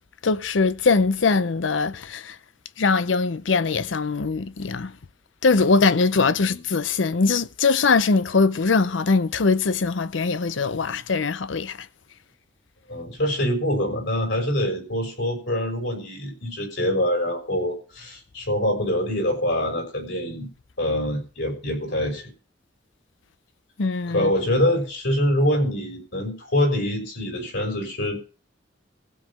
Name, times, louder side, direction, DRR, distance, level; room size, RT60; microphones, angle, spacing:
voice 1, 0.2-2.4 2.8-4.9 5.4-11.8 23.8-24.3, left 4 dB, 90° left, 0.6 m, -21 dB
voice 2, 6.1-6.6 10.8-10.9 12.9-20.5 20.8-22.3 24.0-28.2, left 1 dB, 70° left, 6.6 m, -25 dB
15.5 x 5.4 x 7.3 m
head